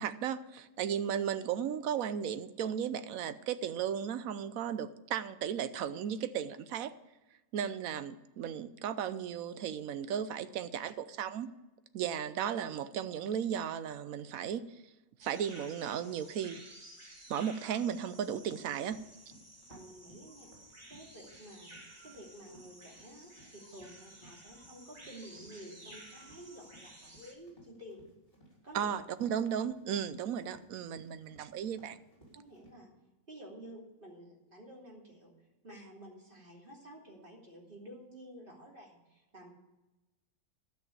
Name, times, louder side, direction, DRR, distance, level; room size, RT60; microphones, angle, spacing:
voice 1, 0.0-6.9 7.5-11.5 11.9-14.8 15.2-16.6 17.3-19.0 28.7-32.0, right 8 dB, 80° right, 12 dB, 1.1 m, -35 dB
sound 1, 15.2-27.3, right 1 dB, 20° right, 1.9 m, -54 dB
Run, 18.4-32.7, right 1 dB, 40° left, 4.1 m, -61 dB
voice 2, 19.7-20.5 20.9-21.8 22.0-28.0 28.6-29.0 32.3-32.9 33.3-35.3 35.6-39.5, right 1 dB, 35° right, -2 dB, 3.1 m, -51 dB
13.0 x 6.1 x 8.7 m, 1.0 s
omnidirectional pair, 1.5 m